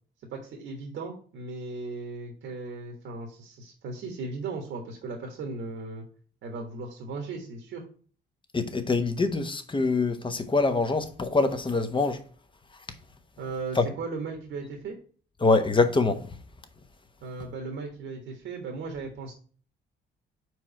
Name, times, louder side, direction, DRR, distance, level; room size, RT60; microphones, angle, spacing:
voice 1, 0.3-6.1 6.4-7.8 13.4-14.9 17.2-19.3, right 3 dB, 75° right, 1.4 m, -37 dB
voice 2, 8.5-12.2 13.7-13.9 15.4-16.3, left 3 dB, 25° left, 1.0 m, -24 dB
4.7 x 4.5 x 5.7 m
cardioid pair, 90°, 20 cm